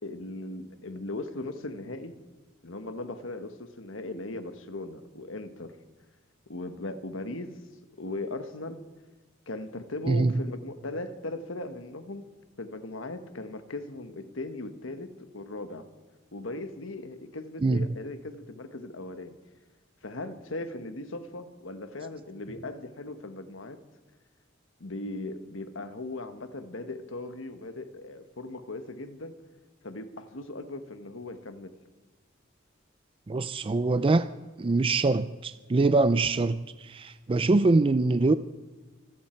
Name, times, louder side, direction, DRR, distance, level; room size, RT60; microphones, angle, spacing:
voice 1, 0.0-2.2 2.6-5.7 6.5-7.6 8.0-8.8 9.5-12.2 12.6-15.9 16.3-19.4 20.0-23.8 24.8-29.3 29.8-31.7, left 2 dB, 80° left, 9 dB, 1.4 m, -38 dB
voice 2, 33.3-34.3 34.6-38.3, right 3 dB, 25° right, 13 dB, 0.4 m, -24 dB
25.5 x 12.5 x 4.5 m, 1.3 s
head